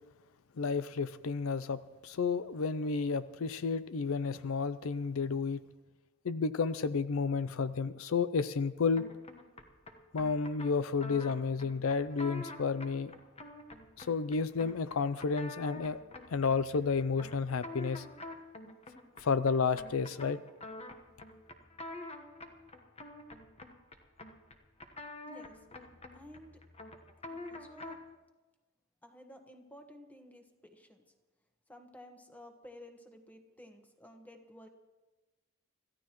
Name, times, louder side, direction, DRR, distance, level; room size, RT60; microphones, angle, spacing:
voice 1, 0.6-5.6 6.2-9.0 10.1-13.1 14.0-16.0 16.3-18.0 19.2-20.4, left 5 dB, 80° left, 14 dB, 0.5 m, -31 dB
sound 1, 8.9-28.1, left 2 dB, 30° left, 1.2 m, -48 dB
voice 2, 25.3-25.6 26.1-26.5 27.3-28.0 29.0-31.0 31.7-34.7, left 1 dB, 10° left, 4 dB, 1.4 m, -53 dB
26.5 x 14.0 x 3.1 m, 1.1 s
head